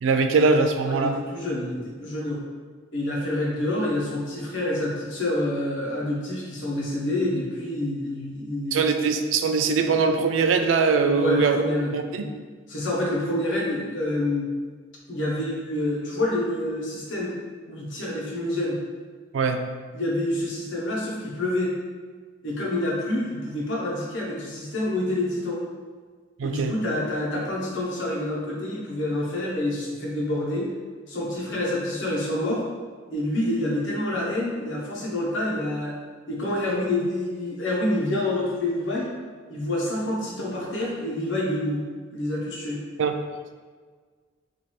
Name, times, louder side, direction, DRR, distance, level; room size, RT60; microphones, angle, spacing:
voice 1, 0.0-1.2 8.7-11.6 11.9-12.3 19.3-19.6 26.4-26.8 43.0-43.1, right 4 dB, 85° right, 7 dB, 0.3 m, -22 dB
voice 2, 0.8-2.4 2.9-8.8 11.1-12.3 12.7-14.5 15.1-17.3 17.7-18.8 19.9-21.7 22.4-25.6 26.4-30.7 31.1-32.6 33.1-36.0 36.3-39.1 39.5-41.8 42.1-42.8, left 1 dB, 75° left, -3 dB, 0.9 m, -27 dB
3.0 x 2.6 x 4.3 m, 1.5 s
head